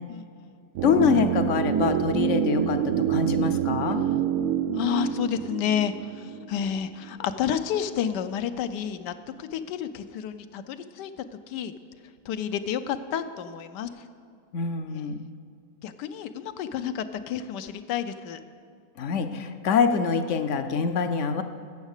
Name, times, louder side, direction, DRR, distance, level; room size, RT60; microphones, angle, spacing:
voice 1, 0.1-0.6 4.7-11.1 11.5-11.7 12.2-14.0 14.9-15.0 15.8-18.4, left 9 dB, 85° left, 10 dB, 1.3 m, -30 dB
sound 1, 0.7-6.8 7.0-7.1, right 10 dB, 75° right, 1.2 m, -27 dB
voice 2, 0.8-4.0 14.5-15.2 19.0-21.4, left 6 dB, 65° left, 9 dB, 0.8 m, -25 dB
15.5 x 7.2 x 6.5 m, 2.4 s
omnidirectional pair, 1.8 m